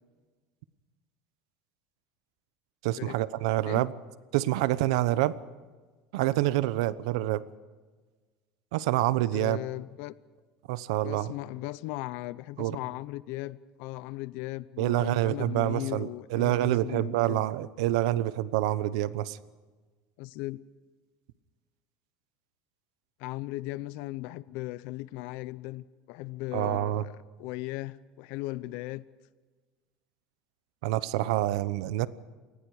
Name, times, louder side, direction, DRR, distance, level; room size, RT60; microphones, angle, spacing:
voice 1, 2.8-3.9 4.3-5.3 6.1-7.4 8.7-9.6 10.7-11.3 12.6-12.8 14.8-19.4 26.5-27.0 30.8-32.1, right 15 dB, 85° right, 1.0 m, -27 dB
voice 2, 9.3-10.1 11.0-17.5 20.2-20.6 23.2-29.0, left 18 dB, 60° left, 0.7 m, -37 dB
28.0 x 19.5 x 4.9 m
cardioid pair, 165°, 3 cm